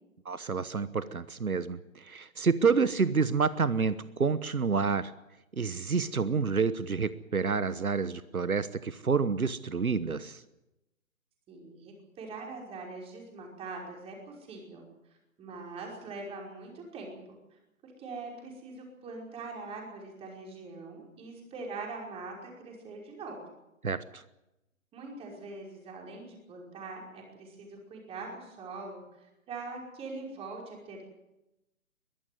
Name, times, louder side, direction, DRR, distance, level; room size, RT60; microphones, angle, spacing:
voice 1, 0.2-5.1 5.6-10.4 23.8-24.2, right 5 dB, 85° right, 15 dB, 1.2 m, -28 dB
voice 2, 11.5-14.8 15.4-23.4 24.9-31.1, right 3 dB, 15° right, 0 dB, 5.3 m, -43 dB
22.5 x 15.0 x 9.4 m, 0.94 s
figure-of-eight pair, 135°, 42 cm